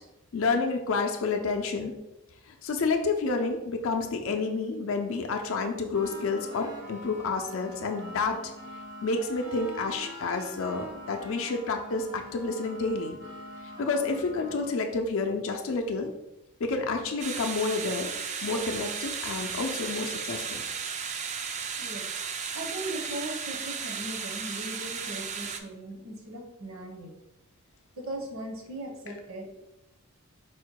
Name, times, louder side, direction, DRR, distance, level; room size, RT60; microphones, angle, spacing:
voice 1, 0.3-1.9 2.6-8.4 9.0-13.2 13.8-16.1 16.6-18.1 18.4-20.6, left 4 dB, 60° left, 3 dB, 0.4 m, -29 dB
sound 1, 5.9-14.8, equal, 80° right, 1.2 m, -43 dB
sound 2, 17.2-25.6, right 6 dB, 30° right, 0.3 m, -35 dB
voice 2, 22.5-27.1 27.9-29.6, right 1 dB, 65° right, 1 dB, 0.9 m, -38 dB
4.2 x 2.2 x 4.6 m, 0.93 s
head